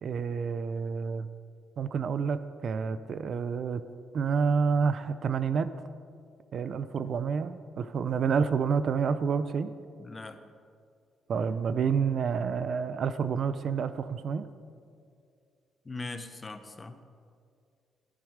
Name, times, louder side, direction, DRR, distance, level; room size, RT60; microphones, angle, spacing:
voice 1, 0.0-1.3 1.8-3.8 4.1-5.7 6.5-9.7 11.3-14.5, right 6 dB, 55° right, 13 dB, 0.4 m, -29 dB
voice 2, 10.0-10.4 15.8-16.9, left 3 dB, 20° left, 9 dB, 0.7 m, -40 dB
11.0 x 10.5 x 5.0 m, 2.3 s
cardioid pair, 130°, 0 cm